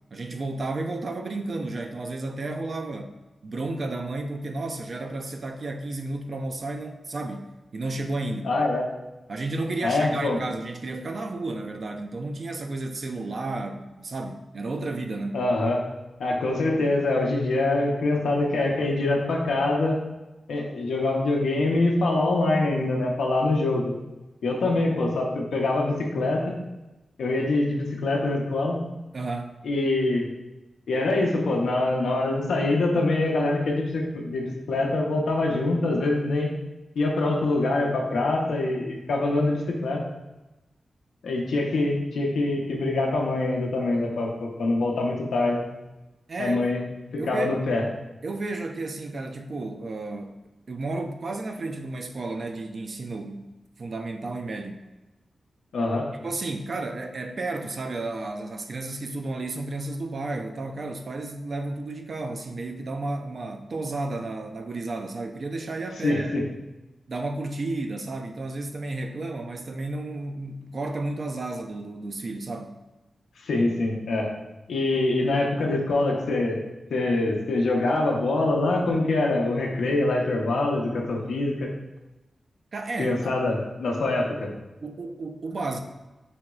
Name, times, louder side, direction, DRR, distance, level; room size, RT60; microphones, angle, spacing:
voice 1, 0.1-3.1 3.4-8.5 9.3-15.5 29.1-29.6 46.3-46.7 47.2-47.5 48.2-50.4 50.7-54.8 56.2-66.4 67.1-72.8 82.7-83.3 84.8-85.8, right 2 dB, 60° right, 5 dB, 0.4 m, -32 dB
voice 2, 8.4-8.9 9.8-10.4 15.3-15.8 16.2-20.0 20.5-23.9 24.4-26.6 27.2-28.8 29.6-30.3 30.9-36.5 37.0-40.0 41.2-45.6 46.4-46.8 47.1-47.8 55.7-56.1 66.0-66.4 73.4-74.3 74.7-76.6 76.9-81.7 83.0-84.5, left 2 dB, 85° left, -1 dB, 0.6 m, -24 dB
5.1 x 3.0 x 2.3 m, 1.0 s
cardioid pair, 45°, 0 cm